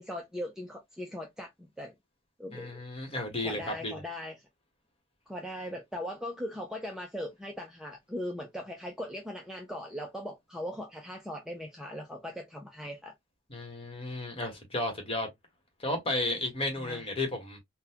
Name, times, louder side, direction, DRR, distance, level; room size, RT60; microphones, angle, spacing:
voice 1, 0.0-1.9 2.4-2.8 3.4-4.4 5.3-13.1 16.8-17.1, left 1 dB, 5° right, 0.4 m, -39 dB
voice 2, 2.5-4.0 13.5-15.3 15.8-17.6, left 2 dB, 30° left, 1.2 m, -33 dB
3.8 x 2.2 x 2.7 m
head